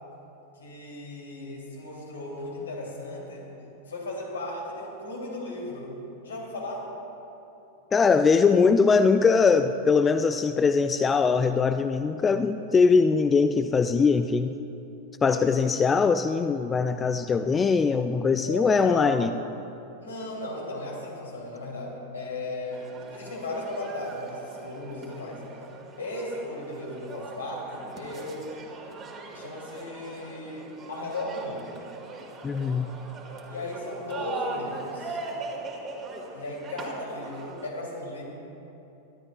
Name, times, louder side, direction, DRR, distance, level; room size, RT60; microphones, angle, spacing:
voice 1, 0.5-3.5 3.9-6.8 15.2-15.5 18.4-19.2 20.0-25.4 26.0-28.5 29.3-31.8 33.5-35.2 36.3-38.2, left 1 dB, 70° left, -2 dB, 2.9 m, -36 dB
voice 2, 7.9-14.5 15.2-19.3 32.4-33.0, left 5 dB, 20° left, 10 dB, 0.3 m, -21 dB
sound 1, 22.7-37.7, right 3 dB, 25° right, 1.9 m, -41 dB
22.5 x 12.0 x 2.4 m, 3.0 s
figure-of-eight pair, 90°, 0 cm